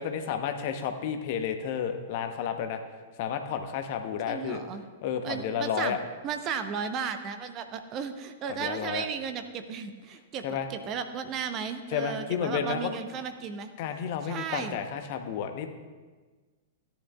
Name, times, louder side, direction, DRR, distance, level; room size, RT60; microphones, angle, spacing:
voice 1, 0.0-2.8 3.2-4.6 5.0-6.0 8.5-9.1 10.4-10.7 11.9-12.9 13.8-15.7, left 8 dB, 45° left, 7 dB, 0.9 m, -31 dB
voice 2, 4.3-4.8 5.2-6.0 6.2-13.7 14.2-14.8, right 6 dB, 30° right, 9 dB, 0.7 m, -35 dB
16.5 x 10.0 x 2.4 m, 1.3 s
figure-of-eight pair, 100°, 0 cm